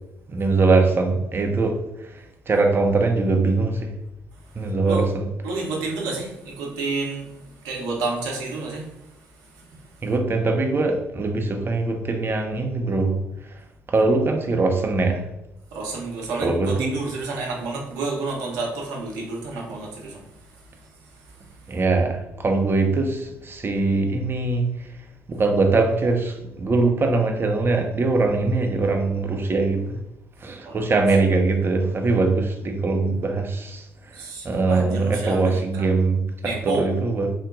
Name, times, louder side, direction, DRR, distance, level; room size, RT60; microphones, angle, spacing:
voice 1, 0.3-3.9 4.6-5.3 10.0-13.2 13.4-13.5 13.9-15.2 16.4-16.9 21.7-24.9 25.3-30.0 30.4-37.3, right 3 dB, 35° right, 0.7 m, -22 dB
voice 2, 5.4-9.1 9.5-10.0 15.7-20.2 20.5-20.9 21.1-21.6 30.6-30.9 34.1-35.9 36.4-36.9, right 3 dB, 70° right, 0.9 m, -30 dB
3.9 x 2.2 x 3.8 m
figure-of-eight pair, 45°, 7 cm